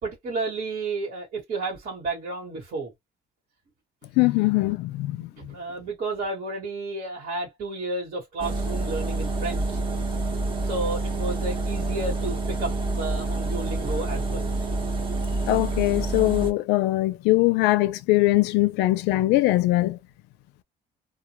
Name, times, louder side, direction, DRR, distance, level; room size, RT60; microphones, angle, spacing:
voice 1, 0.0-2.9 5.2-9.8 10.6-14.5, right 3 dB, 50° right, 1.2 m, -32 dB
voice 2, 4.2-5.5 15.5-20.0, left 18 dB, 90° left, 0.4 m, -22 dB
sound 1, 8.4-16.5, right 2 dB, 30° right, 0.8 m, -28 dB
2.1 x 2.1 x 2.9 m
cardioid pair, 110°, 17 cm